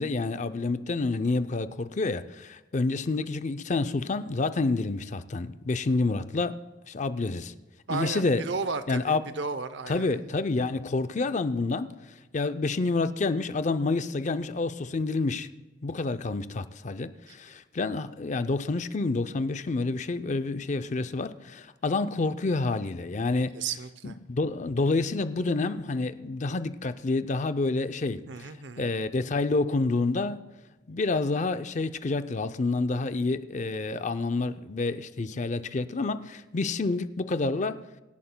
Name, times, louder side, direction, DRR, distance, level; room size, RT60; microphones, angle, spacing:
voice 1, 0.0-6.6 6.9-7.5 7.9-8.4 8.9-9.2 9.9-11.9 12.3-15.5 15.8-23.6 24.0-28.5 28.8-30.4 30.9-37.8, left 3 dB, 40° left, 0.5 m, -28 dB
voice 2, 7.9-10.3 17.3-17.4 23.5-24.2 28.3-28.9, right 4 dB, 75° right, 0.7 m, -34 dB
25.0 x 11.0 x 2.2 m
head